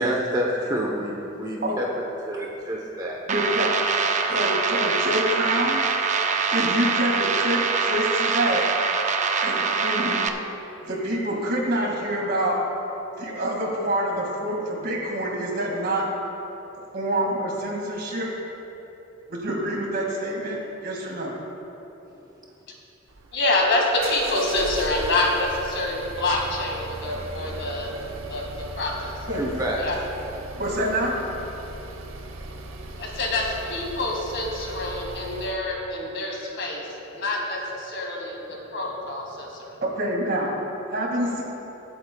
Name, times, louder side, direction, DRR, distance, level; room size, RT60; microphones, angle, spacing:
voice 1, 0.0-1.9 2.3-3.2 4.3-4.4 29.3-29.8, right 1 dB, 20° right, -2 dB, 0.9 m, -27 dB
sound 1, 3.3-10.3, right 5 dB, 35° right, 0.5 m, -24 dB
voice 2, 3.3-3.7 4.3-5.8 6.5-8.7 9.4-10.2 10.8-12.6 13.2-16.1 16.9-18.3 19.3-21.3 29.3-29.4 30.5-31.2 39.8-40.5 40.9-41.4, right 1 dB, 50° right, -1 dB, 2.1 m, -26 dB
sound 2, 23.1-35.6, right 2 dB, 80° right, 0.8 m, -38 dB
voice 3, 23.3-27.9 28.3-28.5 28.8-29.1 29.8-30.0 33.0-38.4 38.7-39.8, left 2 dB, 60° left, -1 dB, 2.0 m, -26 dB
23.5 x 8.1 x 2.3 m, 3.0 s
head